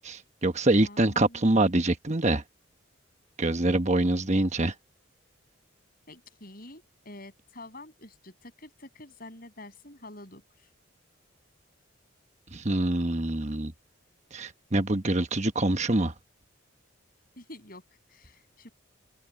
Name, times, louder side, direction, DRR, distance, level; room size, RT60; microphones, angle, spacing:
voice 1, 0.0-2.4 3.4-4.7 12.5-13.7 14.3-16.1, right 2 dB, 35° right, 1.2 m, -25 dB
voice 2, 0.8-1.5 3.9-4.5 6.1-10.7 17.4-17.8 18.1-18.7, left 1 dB, 45° left, 7.8 m, -48 dB
head